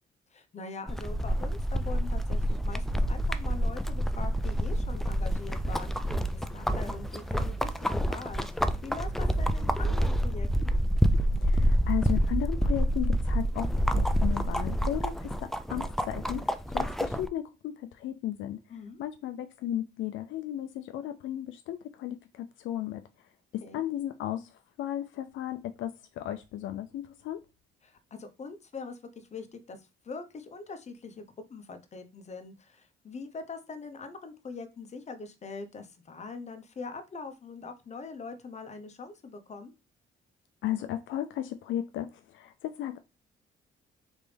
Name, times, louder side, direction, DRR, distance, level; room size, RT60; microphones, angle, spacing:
voice 1, 0.3-10.8 18.7-19.0 23.6-23.8 27.8-31.2 31.5-39.7, left 4 dB, 35° left, 0.8 m, -43 dB
sound 1, 0.9-17.3, equal, ahead, 0.3 m, -28 dB
voice 2, 11.4-18.6 19.0-23.0 23.5-27.4 40.6-43.0, left 12 dB, 75° left, 0.4 m, -35 dB
4.0 x 3.4 x 3.3 m
cardioid pair, 90°, 20 cm